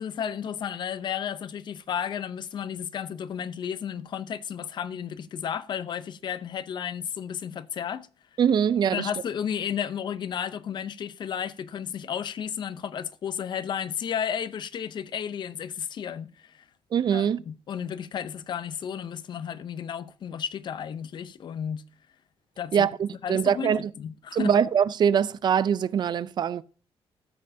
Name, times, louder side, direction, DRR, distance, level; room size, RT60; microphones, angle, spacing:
voice 1, 0.0-8.1 8.9-16.6 17.1-21.8 22.6-22.9 23.2-24.5, left 8 dB, 45° left, 0.7 m, -33 dB
voice 2, 8.4-9.1 16.9-17.4 22.7-23.9 24.3-26.6, right 8 dB, 45° right, 0.5 m, -23 dB
14.0 x 7.7 x 2.7 m
cardioid pair, 165°, 11 cm